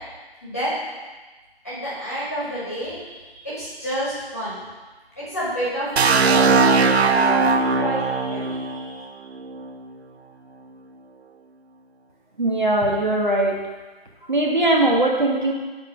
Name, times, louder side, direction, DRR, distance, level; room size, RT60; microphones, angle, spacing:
voice 1, 1.6-4.6 5.2-9.0, equal, 15° left, -10 dB, 1.9 m, -30 dB
sound 1, 6.0-9.8, right 4 dB, 85° right, 0.5 m, -19 dB
voice 2, 12.4-13.5 14.3-15.5, right 1 dB, 50° right, -1 dB, 1.4 m, -20 dB
10.5 x 4.1 x 6.1 m, 1.2 s
figure-of-eight pair, 175°, 31 cm